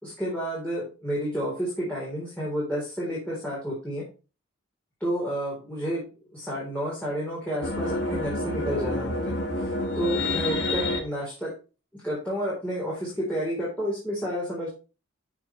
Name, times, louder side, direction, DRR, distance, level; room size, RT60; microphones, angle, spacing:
voice 1, 0.0-4.0 5.0-6.0 6.3-11.5 11.9-14.7, equal, 10° left, -7 dB, 4.0 m, -30 dB
sound 1, 7.6-11.0, left 2 dB, 55° left, 2.0 m, -28 dB
13.5 x 6.0 x 3.3 m, 0.33 s
head